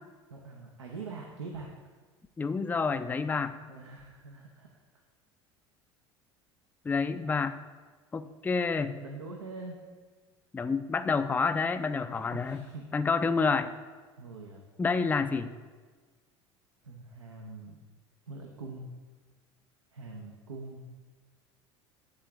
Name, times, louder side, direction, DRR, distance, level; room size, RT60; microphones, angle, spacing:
voice 1, 0.3-1.7 3.7-4.7 8.9-9.8 12.1-12.9 14.2-14.6 16.8-17.8 18.3-18.9 19.9-20.9, right 3 dB, 85° right, 1 dB, 0.7 m, -43 dB
voice 2, 2.4-3.6 6.8-7.6 8.1-9.0 10.5-12.6 12.9-13.7 14.8-15.5, left 4 dB, 10° left, 10 dB, 0.4 m, -28 dB
10.5 x 3.7 x 3.6 m, 1.4 s
figure-of-eight pair, 70°, 15 cm